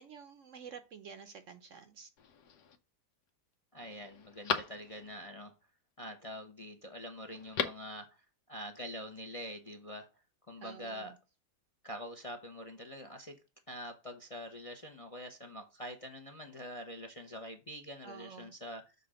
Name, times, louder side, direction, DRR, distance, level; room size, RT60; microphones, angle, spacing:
voice 1, 0.0-2.1 10.6-11.2 18.0-18.5, right 6 dB, 60° right, 1.0 m, -50 dB
Telephone, 2.2-2.8 3.3-3.4 3.8-5.3 7.3-7.9 8.2-8.3, left 7 dB, 80° left, 1.5 m, -38 dB
voice 2, 3.7-5.5 6.0-8.2 8.5-10.1 10.5-11.1 11.8-13.4 13.7-18.9, equal, 30° left, 0.7 m, -45 dB
6.8 x 3.7 x 6.3 m
omnidirectional pair, 1.7 m